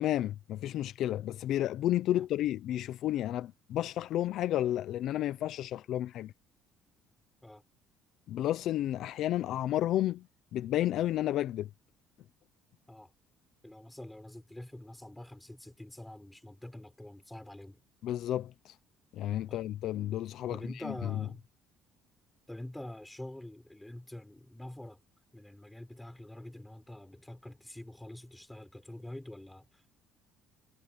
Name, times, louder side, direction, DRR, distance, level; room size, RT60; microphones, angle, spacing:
voice 1, 0.0-6.3 8.3-10.2 10.5-11.7 18.0-18.8 19.1-20.6 20.8-20.9, left 13 dB, 55° left, 0.6 m, -31 dB
voice 2, 13.6-17.8 19.5-19.6 20.5-21.5 22.5-25.0 25.3-30.0, left 1 dB, 5° left, 4.4 m, -46 dB
cardioid pair, 175°, 0 cm